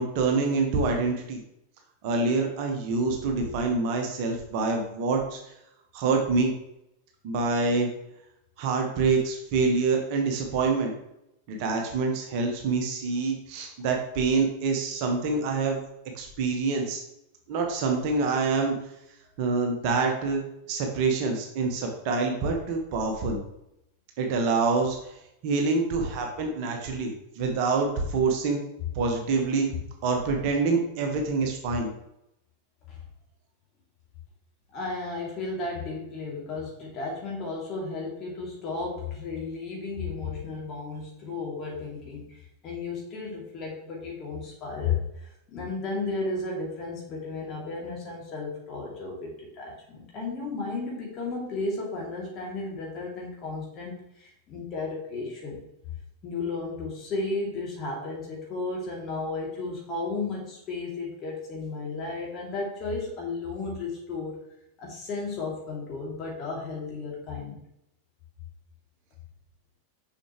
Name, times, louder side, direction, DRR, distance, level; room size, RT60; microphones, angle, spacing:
voice 1, 0.0-1.4 2.0-5.4 5.9-6.5 7.2-7.9 8.6-10.9 11.5-15.8 16.1-17.0 17.5-18.8 19.4-23.4 24.2-25.1 25.4-28.6 28.9-29.7 30.0-31.9, right 4 dB, 45° right, 2 dB, 1.3 m, -26 dB
voice 2, 34.7-55.6 56.2-64.4 64.8-67.6, left 3 dB, 35° left, -2 dB, 2.7 m, -34 dB
6.9 x 5.9 x 3.1 m, 0.82 s
figure-of-eight pair, 90°, 0 cm